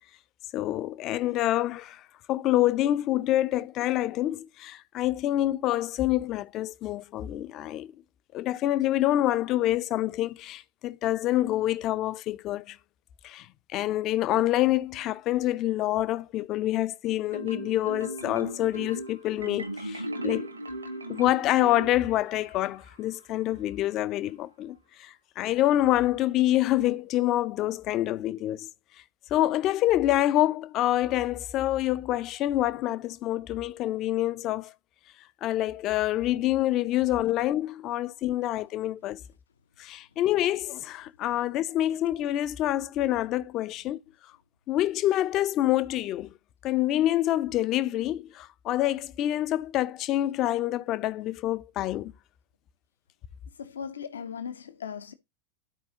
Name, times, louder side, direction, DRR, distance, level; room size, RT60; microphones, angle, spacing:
voice 1, 0.5-2.0 2.3-7.9 8.3-12.8 13.2-13.5 13.7-20.5 21.1-28.7 29.3-34.7 35.4-39.2 39.8-44.0 44.7-46.3 46.6-52.1, left 14 dB, 35° left, 0.5 m, -27 dB
Marimba xylophone, 17.3-22.5, right 1 dB, 80° right, 1.4 m, -37 dB
voice 2, 53.6-55.1, left 7 dB, 70° left, 0.7 m, -38 dB
12.5 x 4.6 x 2.8 m
figure-of-eight pair, 90°, 0 cm